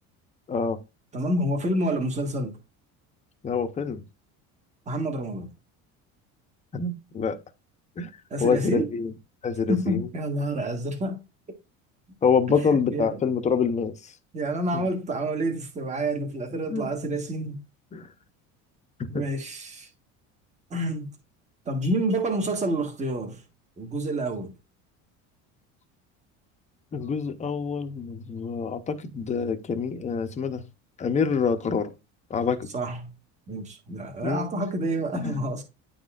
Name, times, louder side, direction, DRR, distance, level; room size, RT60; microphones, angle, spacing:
voice 1, 0.5-0.8 3.4-4.0 6.7-7.4 8.0-8.1 8.4-9.1 9.4-10.1 12.2-14.1 14.7-14.9 16.7-16.9 17.9-18.1 19.0-19.2 26.9-30.6 31.0-31.9 32.3-32.7 34.2-34.5 35.1-35.5, left 5 dB, 20° left, 0.7 m, -26 dB
voice 2, 1.1-2.6 4.9-5.5 8.3-8.9 9.7-11.2 12.9-13.2 14.3-17.6 19.1-19.9 20.7-21.1 21.6-23.4 23.8-24.5 32.7-33.1 33.5-35.6, right 1 dB, 20° right, 1.3 m, -28 dB
10.0 x 4.0 x 2.4 m
cardioid pair, 150°, 32 cm